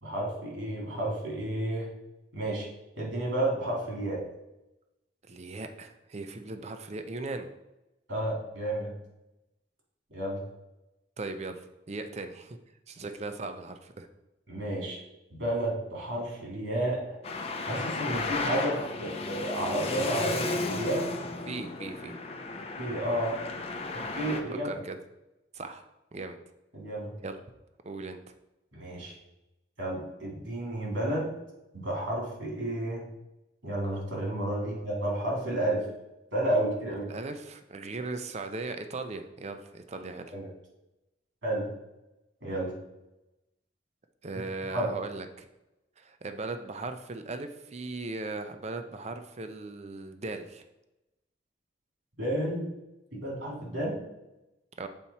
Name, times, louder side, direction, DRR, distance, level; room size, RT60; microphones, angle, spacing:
voice 1, 0.0-1.9 2.3-2.7 3.0-4.2 8.1-8.9 10.1-10.4 14.5-15.0 15.3-17.2 17.6-21.1 22.8-23.4 23.9-24.7 26.7-27.2 28.7-29.1 29.8-31.3 31.7-33.0 33.6-35.8 36.3-37.1 40.3-40.5 41.4-41.7 42.4-42.7 44.7-44.9 52.2-52.7 53.1-54.0, right 1 dB, 90° right, -3 dB, 2.6 m, -31 dB
voice 2, 5.2-7.5 11.2-12.6 12.9-14.1 21.5-22.2 24.6-25.0 25.5-25.8 26.1-26.4 27.2-27.4 27.8-28.2 34.6-34.8 37.1-40.4 44.2-45.5 46.0-50.6 54.8-54.9, right 3 dB, 35° right, 7 dB, 0.5 m, -38 dB
Traffic noise roadway noise, 17.2-24.4, left 3 dB, 35° left, 0.7 m, -34 dB
7.3 x 4.3 x 4.2 m, 0.96 s
head